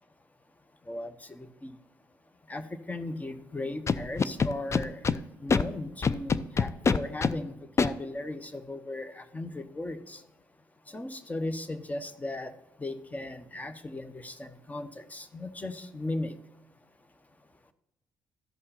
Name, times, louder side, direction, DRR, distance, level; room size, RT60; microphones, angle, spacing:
voice 1, 0.8-1.8 2.5-10.3 10.8-16.4, left 2 dB, 20° left, 11 dB, 1.0 m, -37 dB
Scratching (performance technique), 3.9-5.2 5.5-5.6 6.0-7.3 7.8-7.9, left 5 dB, 35° left, 0.5 m, -24 dB
13.0 x 5.5 x 4.2 m, 0.90 s
supercardioid pair, 60°, 8 cm